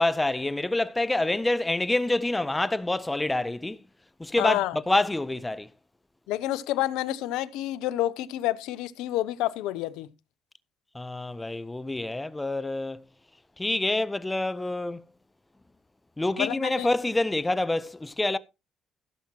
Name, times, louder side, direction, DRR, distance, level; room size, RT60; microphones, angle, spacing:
voice 1, 0.0-3.8 4.2-5.7 10.9-13.0 13.6-15.0 16.2-18.4, left 2 dB, 15° left, 0.7 m, -27 dB
voice 2, 4.4-4.8 6.3-10.1 16.4-16.9, left 14 dB, 80° left, 0.6 m, -29 dB
16.0 x 7.3 x 2.9 m
supercardioid pair, 60°, 0 cm